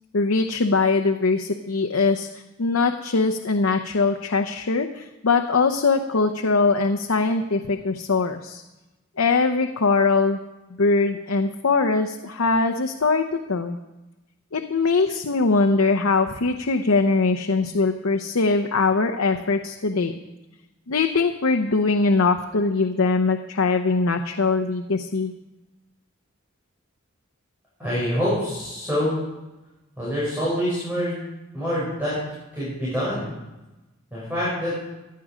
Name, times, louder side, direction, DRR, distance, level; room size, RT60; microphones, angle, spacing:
voice 1, 0.1-2.3 2.6-8.6 9.2-10.4 10.8-13.8 14.5-20.2 20.9-25.3, left 4 dB, 85° left, 5 dB, 0.8 m, -22 dB
voice 2, 27.8-29.2 30.0-31.2 31.5-32.2 32.5-33.3 34.1-34.8, equal, 10° right, -9 dB, 6.2 m, -25 dB
16.0 x 11.5 x 5.0 m, 1.0 s
head